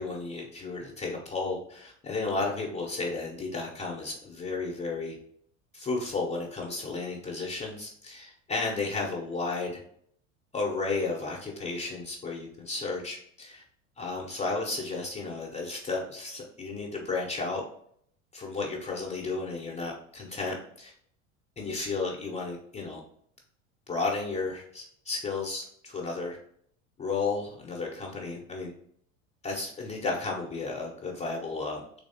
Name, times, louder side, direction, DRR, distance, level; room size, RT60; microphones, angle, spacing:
voice 1, 0.0-5.2 5.7-9.8 10.5-13.6 14.0-17.6 18.3-20.9 21.6-23.0 23.9-26.4 27.0-28.7 29.4-31.8, left 3 dB, 20° left, -1 dB, 0.6 m, -33 dB
3.5 x 3.1 x 2.7 m, 0.64 s
hypercardioid pair, 80°, 38 cm